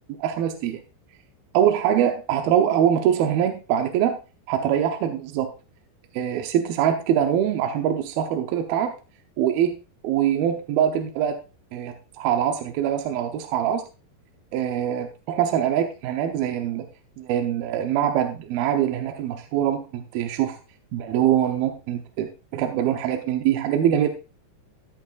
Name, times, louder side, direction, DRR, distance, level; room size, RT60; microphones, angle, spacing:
voice 1, 0.2-0.8 1.5-4.2 4.5-5.5 6.1-8.9 9.4-9.8 10.0-11.4 11.7-13.9 14.5-16.9 17.2-20.6 20.9-24.1, right 10 dB, 75° right, 5 dB, 2.4 m, -23 dB
14.0 x 10.5 x 2.5 m, 0.30 s
omnidirectional pair, 5.1 m